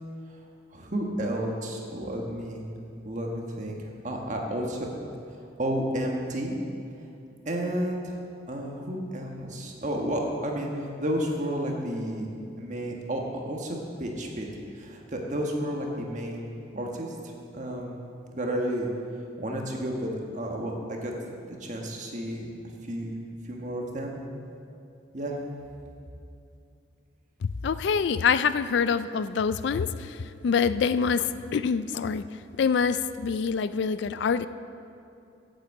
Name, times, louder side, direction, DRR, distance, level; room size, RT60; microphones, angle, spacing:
voice 1, 0.7-2.7 3.0-3.8 4.0-4.9 5.6-6.6 7.4-8.2 8.5-14.5 14.7-16.5 16.7-17.1 17.5-18.0 18.3-18.9 19.4-22.5 22.8-23.2 23.4-24.2 25.1-25.4, right 1 dB, 40° right, 0 dB, 1.5 m, -31 dB
voice 2, 27.4-32.2 32.6-34.5, left 6 dB, 65° left, 14 dB, 0.3 m, -26 dB
8.4 x 8.1 x 8.0 m, 2.6 s
head